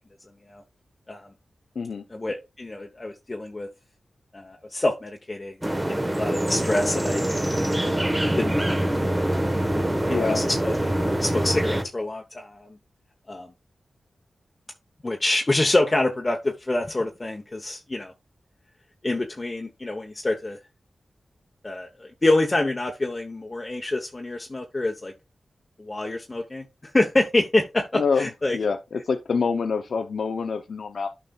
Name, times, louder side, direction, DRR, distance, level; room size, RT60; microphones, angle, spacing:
voice 1, 2.1-3.7 4.3-5.6 5.9-7.2 7.8-7.9 8.4-9.2 9.7-10.7 11.2-12.7 13.3-13.5 15.0-18.1 19.0-20.6 21.6-25.1 25.8-26.6 26.9-28.6, left 2 dB, 35° left, 1.1 m, -26 dB
sound 1, 5.6-11.8, right 1 dB, 20° right, 1.3 m, -24 dB
voice 2, 10.1-10.4 27.9-31.1, left 5 dB, 80° left, 0.6 m, -26 dB
11.5 x 5.3 x 2.4 m
cardioid pair, 50°, 0 cm